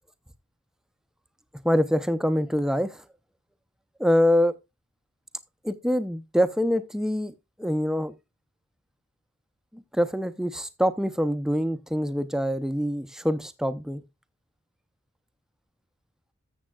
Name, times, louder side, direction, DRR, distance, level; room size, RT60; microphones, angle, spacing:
voice 1, 1.6-3.0 4.0-4.5 5.6-7.3 7.6-8.1 9.7-14.0, equal, ahead, 0.5 m, -25 dB
14.0 x 7.4 x 2.3 m
head